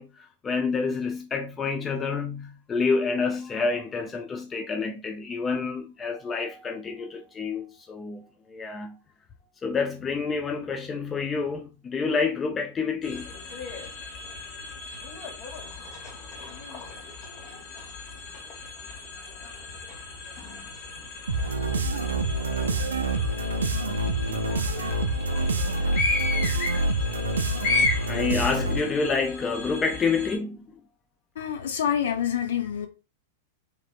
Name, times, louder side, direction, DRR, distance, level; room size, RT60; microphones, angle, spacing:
voice 1, 0.0-9.0 9.6-13.3 19.2-19.5 22.7-22.8 23.2-23.3 24.3-24.5 24.8-24.9 28.1-30.8, left 4 dB, 20° left, 0.5 m, -28 dB
sound 1, 13.0-30.4, left 3 dB, 50° left, 1.3 m, -34 dB
sound 2, 21.3-29.0, right 2 dB, 85° right, 0.4 m, -27 dB
voice 2, 31.4-32.9, left 9 dB, 75° left, 0.5 m, -27 dB
3.3 x 2.8 x 2.4 m
hypercardioid pair, 100°, 0 cm